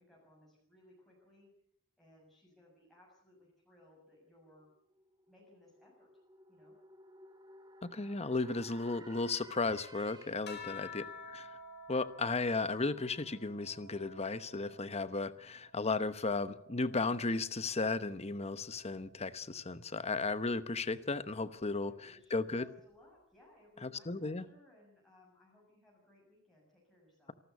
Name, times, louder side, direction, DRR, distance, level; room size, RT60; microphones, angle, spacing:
voice 1, 0.0-1.5 2.0-4.7 5.3-6.2 6.5-6.8 10.5-11.0 21.6-27.3, left 1 dB, ahead, -5 dB, 6.9 m, -63 dB
sound 1, 4.7-10.6, right 2 dB, 20° right, 2.0 m, -56 dB
voice 2, 7.8-11.6 11.9-22.6 23.8-24.4, left 3 dB, 30° left, 13 dB, 1.0 m, -35 dB
sound 2, 10.5-15.3 15.7-17.5 18.6-19.2, left 3 dB, 55° left, 4.7 m, -51 dB
27.0 x 13.0 x 8.2 m, 0.67 s
head